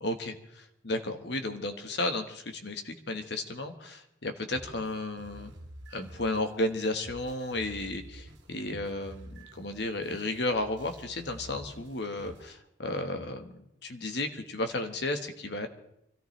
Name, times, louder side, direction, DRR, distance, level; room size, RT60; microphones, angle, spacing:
voice 1, 0.0-5.5 5.9-13.5 13.8-15.7, left 2 dB, 60° left, 6 dB, 1.4 m, -33 dB
sound 1, 4.5-12.5, right 1 dB, 65° right, 1.9 m, -49 dB
25.0 x 14.0 x 3.3 m, 0.79 s
head